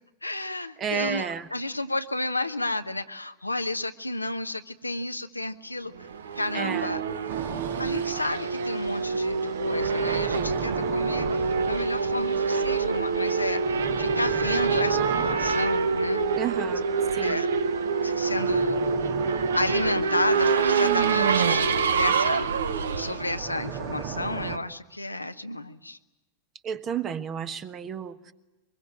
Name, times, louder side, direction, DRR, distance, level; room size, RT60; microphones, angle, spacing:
voice 1, 0.2-6.1 6.3-7.0 7.8-16.2 17.2-17.5 18.0-19.0 19.5-21.6 21.9-22.5 23.0-26.0, left 2 dB, 85° left, 8 dB, 1.0 m, -31 dB
voice 2, 0.8-1.5 6.5-6.9 16.3-16.9 17.1-17.4 26.6-28.3, right 8 dB, 30° right, 11 dB, 1.4 m, -31 dB
Race car auto racing / Accelerating revving vroom, 6.0-24.1, right 5 dB, 65° right, 1.0 m, -26 dB
sound 1, 7.3-24.6, right 7 dB, 45° right, 1.9 m, -39 dB
24.0 x 22.0 x 8.8 m, 1.1 s
figure-of-eight pair, 90°, 0 cm